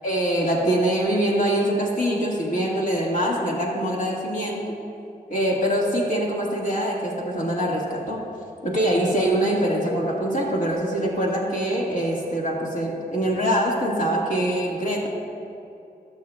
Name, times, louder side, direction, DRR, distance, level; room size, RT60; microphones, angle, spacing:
voice 1, 0.0-4.6 5.3-8.2 8.6-15.1, right 1 dB, 50° left, -4 dB, 1.8 m, -24 dB
18.5 x 6.7 x 2.3 m, 2.7 s
cardioid pair, 65°, 16 cm